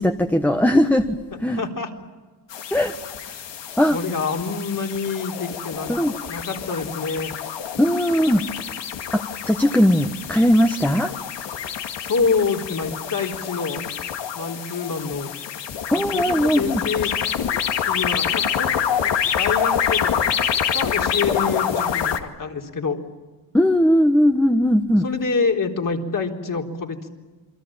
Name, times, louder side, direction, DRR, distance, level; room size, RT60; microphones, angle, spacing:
voice 1, 0.0-1.6 2.7-2.9 3.8-4.0 5.9-6.1 7.8-8.4 9.1-11.1 15.9-16.8 23.5-25.0, equal, 5° left, 5 dB, 1.3 m, -19 dB
voice 2, 1.5-1.9 3.9-5.9 6.3-7.3 12.0-13.8 14.4-15.3 15.9-17.1 17.9-18.8 19.0-19.1 19.4-20.1 20.7-23.0 25.0-27.1, left 4 dB, 50° left, 2 dB, 4.0 m, -26 dB
sound 1, 2.5-22.2, left 8 dB, 80° left, 2.3 m, -27 dB
28.5 x 23.0 x 8.8 m, 1.3 s
cardioid pair, 95°, 42 cm